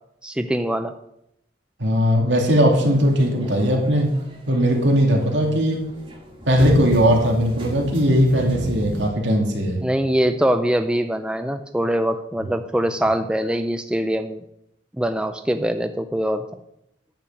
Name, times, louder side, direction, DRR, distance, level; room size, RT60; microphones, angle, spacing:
voice 1, 0.2-0.9 9.8-14.4 15.0-16.4, right 1 dB, 5° right, 8 dB, 0.4 m, -23 dB
voice 2, 1.8-4.2 4.5-5.8 6.5-9.8, equal, 70° right, 0 dB, 2.7 m, -19 dB
sound 1, 2.8-9.1, right 1 dB, 30° right, 1.8 m, -34 dB
10.0 x 5.6 x 8.1 m, 0.79 s
head